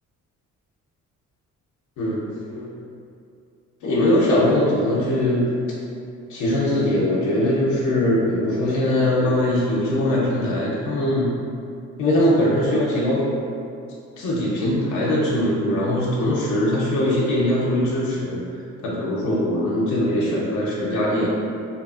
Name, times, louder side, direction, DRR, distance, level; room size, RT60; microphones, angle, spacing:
voice 1, 2.0-2.7 3.8-5.5 6.3-11.3 12.0-13.2 14.2-18.4 18.8-21.3, left 1 dB, 80° left, -5 dB, 0.6 m, -21 dB
2.8 x 2.3 x 2.3 m, 2.4 s
cardioid pair, 90°, 30 cm